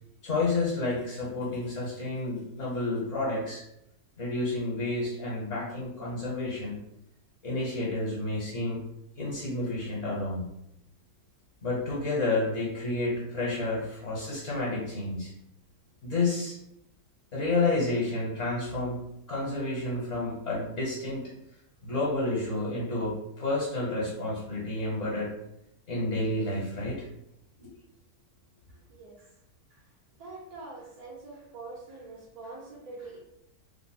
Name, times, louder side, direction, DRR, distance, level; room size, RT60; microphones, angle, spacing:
voice 1, 0.2-3.6 4.2-6.8 7.4-8.8 9.2-10.4 11.6-15.3 16.0-16.6 17.3-19.0 19.3-21.2 21.8-25.3 25.9-27.1 27.6-27.7, left 2 dB, 60° left, -5 dB, 1.3 m, -30 dB
voice 2, 30.2-33.2, right 3 dB, 85° right, -5 dB, 1.4 m, -44 dB
3.3 x 2.0 x 4.1 m, 0.79 s
omnidirectional pair, 1.6 m